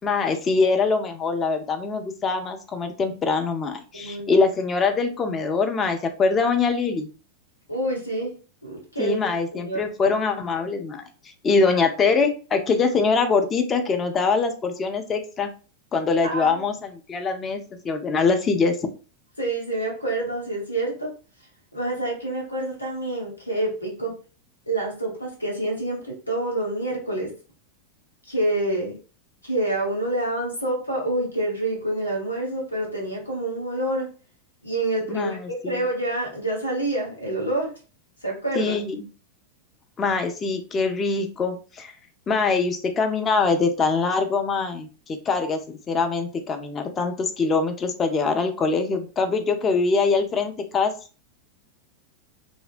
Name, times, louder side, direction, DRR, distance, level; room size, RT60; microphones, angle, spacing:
voice 1, 0.0-7.1 9.0-11.1 11.4-15.5 15.9-17.6 17.8-18.8 35.1-35.8 38.6-39.0 40.0-41.9 42.3-44.9 45.3-45.6 45.9-50.9, left 4 dB, 25° left, 6 dB, 0.4 m, -23 dB
voice 2, 3.9-4.3 7.7-9.2 9.5-9.9 16.2-16.6 19.4-21.1 21.7-24.1 24.7-27.3 28.2-29.0 29.4-34.1 34.6-35.4 35.7-37.7 38.2-38.8, right 1 dB, 85° left, -1 dB, 0.8 m, -27 dB
2.6 x 2.0 x 2.4 m, 0.36 s
figure-of-eight pair, 90°, 0 cm